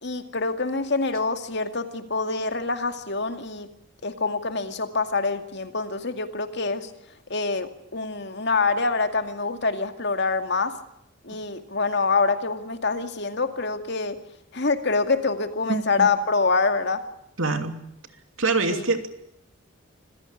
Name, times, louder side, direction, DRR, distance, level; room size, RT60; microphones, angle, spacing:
voice 1, 0.0-3.7 4.0-6.9 7.3-10.8 11.2-14.2 14.5-17.0 18.7-18.8, left 4 dB, 55° left, 7 dB, 2.3 m, -25 dB
voice 2, 15.7-16.1 17.4-17.8 18.4-19.1, right 3 dB, 75° right, 7 dB, 2.9 m, -25 dB
26.0 x 16.0 x 10.0 m, 0.79 s
head